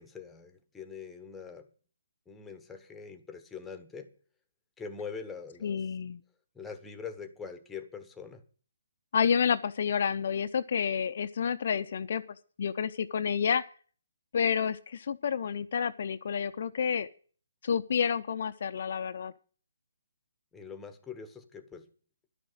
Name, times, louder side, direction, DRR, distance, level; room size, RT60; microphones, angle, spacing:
voice 1, 0.0-1.7 2.3-4.1 4.8-5.8 6.5-8.4 20.5-21.9, left 6 dB, 5° left, 1.1 m, -43 dB
voice 2, 5.6-6.2 9.1-12.2 12.6-13.6 14.3-17.1 17.6-19.3, left 7 dB, 55° left, 0.6 m, -29 dB
12.0 x 6.4 x 9.2 m
hypercardioid pair, 155°, 0 cm